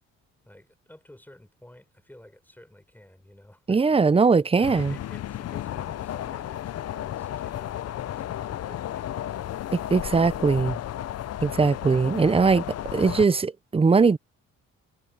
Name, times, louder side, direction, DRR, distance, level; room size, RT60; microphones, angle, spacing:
voice 1, 0.4-4.2 4.6-9.1, left 1 dB, 5° left, 5.9 m, -51 dB
voice 2, 3.7-4.9 9.7-10.8 11.4-12.7 12.9-14.2, right 4 dB, 20° right, 0.6 m, -20 dB
sound 1, 4.6-13.3, left 12 dB, 55° left, 0.6 m, -33 dB
cardioid pair, 90°, 30 cm